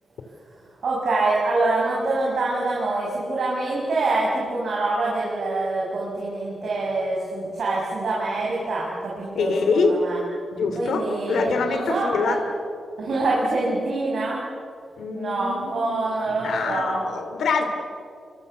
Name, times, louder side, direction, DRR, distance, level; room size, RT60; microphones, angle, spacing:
voice 1, 0.8-10.2 10.7-12.4 13.0-14.4 15.1-17.0, right 2 dB, 60° right, -5 dB, 6.3 m, -25 dB
voice 2, 9.3-10.0 10.5-12.4 15.0-17.6, left 4 dB, 85° left, 6 dB, 2.9 m, -25 dB
28.0 x 25.0 x 6.8 m, 2.5 s
wide cardioid pair, 130°, 0 cm